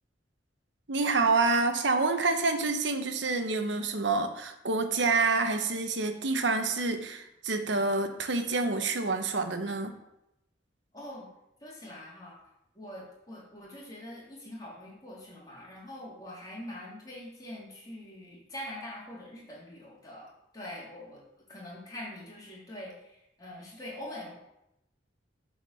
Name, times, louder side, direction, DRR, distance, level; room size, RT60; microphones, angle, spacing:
voice 1, 0.9-9.9, right 3 dB, 85° right, 7 dB, 1.1 m, -27 dB
voice 2, 10.9-11.3 11.6-12.4 12.7-21.2 21.5-24.4, left 1 dB, 20° left, -6 dB, 3.8 m, -44 dB
9.2 x 4.8 x 7.0 m, 0.84 s
head